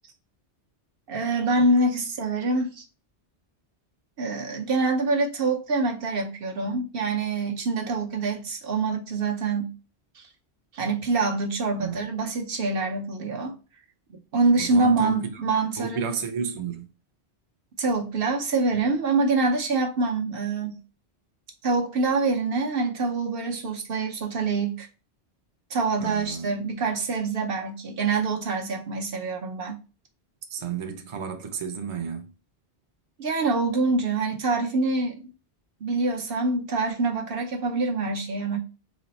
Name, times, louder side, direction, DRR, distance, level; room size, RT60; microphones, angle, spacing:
voice 1, 1.1-2.8 4.2-9.7 10.1-10.2 10.7-13.6 14.3-16.1 17.8-20.8 21.6-24.9 25.7-29.8 33.2-35.2 35.8-38.6, right 3 dB, 60° right, 0.9 m, -25 dB
voice 2, 14.6-15.4 15.8-16.9 26.0-26.5 30.5-32.3, right 7 dB, 35° right, 0.5 m, -32 dB
4.1 x 2.0 x 4.0 m
omnidirectional pair, 1.1 m